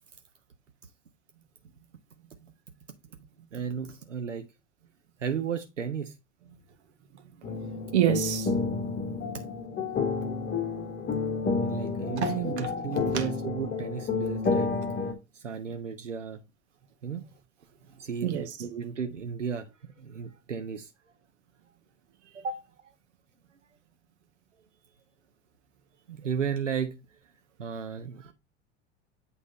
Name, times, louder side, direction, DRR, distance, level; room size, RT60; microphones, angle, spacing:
voice 1, 3.5-4.5 5.2-6.1 9.3-9.5 11.6-14.7 15.3-16.4 17.0-17.2 18.0-19.7 20.0-20.9 22.3-22.6 26.1-27.0 27.6-28.3, right 7 dB, 85° right, 0.8 m, -34 dB
sound 1, 7.4-15.1, left 4 dB, 25° left, 1.7 m, -30 dB
voice 2, 7.9-9.1 12.2-12.7 13.1-13.2 18.2-18.5, right 11 dB, 65° right, 1.5 m, -28 dB
8.5 x 3.6 x 4.1 m
figure-of-eight pair, 80°, 36 cm